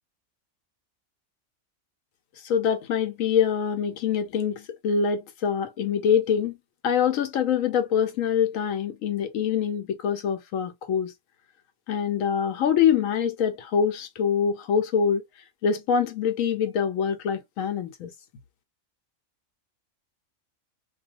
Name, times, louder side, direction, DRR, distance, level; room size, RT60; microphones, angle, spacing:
voice 1, 2.4-6.6 6.8-11.1 11.9-15.2 15.6-18.1, left 7 dB, 75° left, 1.0 m, -24 dB
2.4 x 2.3 x 2.8 m
omnidirectional pair, 1.4 m